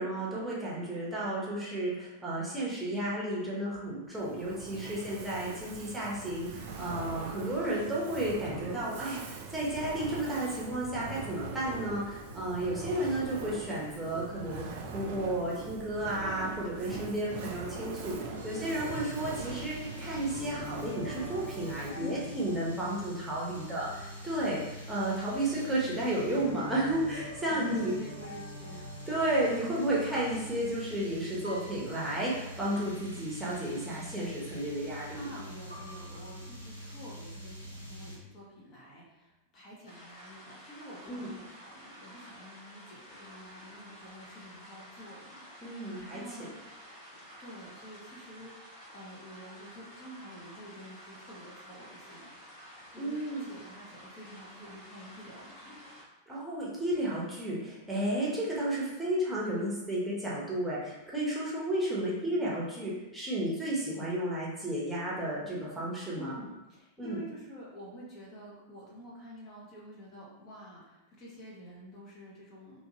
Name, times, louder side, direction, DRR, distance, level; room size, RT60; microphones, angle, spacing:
voice 1, 0.0-14.6 14.9-27.9 29.1-35.4 41.1-41.3 45.6-46.5 53.0-53.5 56.3-66.3 67.0-67.2, right 1 dB, 5° right, -7 dB, 0.9 m, -33 dB
Fire, 4.1-22.1, right 4 dB, 50° right, 0.4 m, -42 dB
sound 1, 18.4-38.2, equal, 90° left, 0.6 m, -44 dB
voice 2, 21.9-22.6 27.5-29.0 35.2-46.6 47.4-52.3 52.9-53.2 53.5-55.8 66.2-72.9, left 1 dB, 35° left, -4 dB, 0.8 m, -47 dB
sound 2, 39.8-56.0, equal, 65° left, 1.3 m, -51 dB
2.8 x 2.5 x 2.8 m, 1.0 s
figure-of-eight pair, 90°, 0 cm